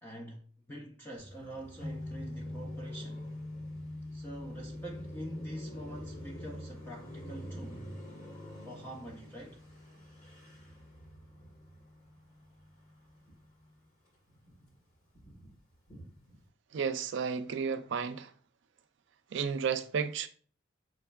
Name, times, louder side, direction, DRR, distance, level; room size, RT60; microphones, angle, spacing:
voice 1, 0.0-3.2 4.1-7.9 8.6-9.6, equal, 10° left, 0.4 m, -45 dB
Car passing by, 1.2-13.6 14.0-16.5, equal, 40° left, 1.6 m, -49 dB
sound 1, 1.8-13.9, left 2 dB, 65° left, 0.9 m, -46 dB
voice 2, 16.7-18.3 19.3-20.3, right 6 dB, 65° right, 0.4 m, -32 dB
6.1 x 2.3 x 2.2 m
head